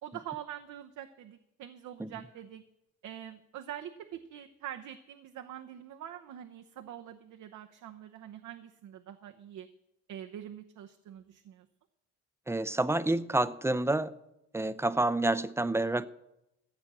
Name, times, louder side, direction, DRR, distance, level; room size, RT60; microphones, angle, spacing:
voice 1, 0.0-2.6 3.0-9.7 10.1-11.7, right 10 dB, 80° right, 1.0 m, -45 dB
voice 2, 12.5-14.1 14.5-16.1, right 2 dB, 10° right, 0.6 m, -28 dB
15.0 x 8.2 x 7.5 m
cardioid pair, 90°, 30 cm